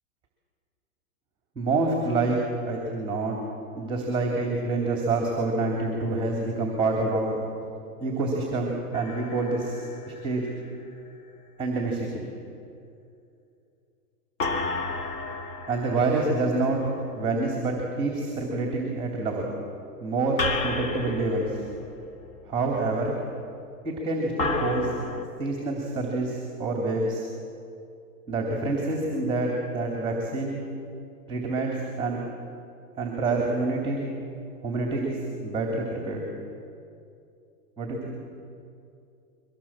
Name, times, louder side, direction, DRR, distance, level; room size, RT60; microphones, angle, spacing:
voice 1, 1.5-2.4 2.7-3.4 3.7-7.4 8.0-10.5 11.6-12.2 15.7-16.8 17.1-19.5 20.0-20.4 20.6-21.6 22.5-23.2 23.8-24.9 25.4-27.2 28.3-30.6 31.3-32.2 33.0-34.1 34.6-36.2 37.8-38.2, right 3 dB, 10° right, 0 dB, 3.3 m, -27 dB
sound 1, 8.9-10.7 14.4-17.6 20.4-22.6 24.4-25.2, left 3 dB, 40° left, 2.0 m, -33 dB
24.0 x 18.0 x 7.6 m, 2.6 s
hypercardioid pair, 145°, 45 cm